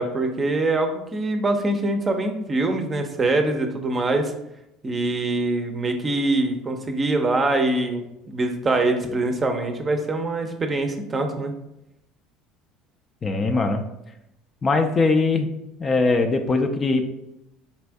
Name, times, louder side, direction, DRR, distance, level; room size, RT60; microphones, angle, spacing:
voice 1, 0.0-4.3 4.8-11.5, right 2 dB, 30° right, 5 dB, 0.6 m, -24 dB
voice 2, 13.2-13.8 14.6-15.5 15.8-17.1, left 3 dB, 35° left, 5 dB, 0.4 m, -21 dB
4.1 x 2.5 x 3.4 m, 0.86 s
hypercardioid pair, 70°, 0 cm